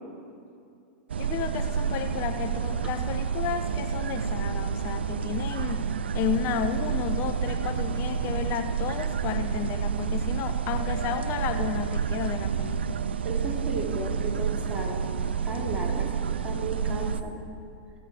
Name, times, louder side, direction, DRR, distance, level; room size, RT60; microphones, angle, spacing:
sound 1, 1.1-17.2, right 7 dB, 90° right, 0.4 m, -29 dB
voice 1, 1.2-5.9 6.1-13.1, left 9 dB, 45° left, 8 dB, 0.5 m, -32 dB
voice 2, 13.2-15.0 15.4-16.1 16.4-17.4, right 2 dB, 20° right, -2 dB, 2.4 m, -34 dB
16.0 x 7.8 x 4.8 m, 2.5 s
hypercardioid pair, 110°, 6 cm